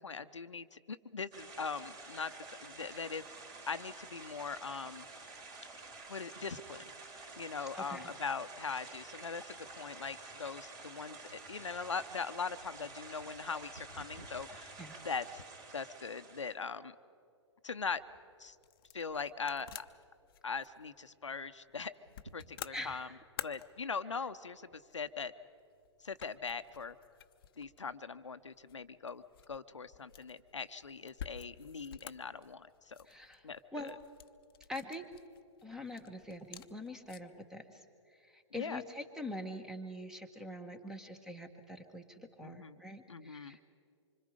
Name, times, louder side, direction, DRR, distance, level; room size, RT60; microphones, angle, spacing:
voice 1, 0.0-2.3 2.6-3.2 3.7-5.1 6.1-6.9 7.4-14.7 15.0-15.4 15.7-16.9 17.6-18.0 18.4-18.6 18.9-19.9 20.4-21.9 22.3-23.1 23.4-25.3 26.0-26.9 27.6-33.0 33.4-33.9 38.5-38.8 42.4-42.8 43.1-43.6, left 5 dB, 80° left, 11 dB, 0.8 m, -41 dB
sound 1, 1.3-16.5, right 3 dB, 25° right, 3.5 m, -50 dB
voice 2, 7.7-8.1 14.8-15.0 22.7-23.2 33.0-33.9 34.7-35.1 35.6-37.8 38.1-43.6, left 1 dB, 5° right, 7 dB, 1.3 m, -44 dB
sound 2, 11.3-15.8 16.3-16.4 17.1-17.4 17.7-18.4 18.9-19.6 19.9-20.0 20.3-20.4 21.9-23.0 23.6-23.7, right 1 dB, 75° right, 2.8 m, -58 dB
sound 3, 17.9-37.4, left 10 dB, 50° left, 0.8 m, -53 dB
25.5 x 25.0 x 5.0 m, 2.3 s
figure-of-eight pair, 120°, 15 cm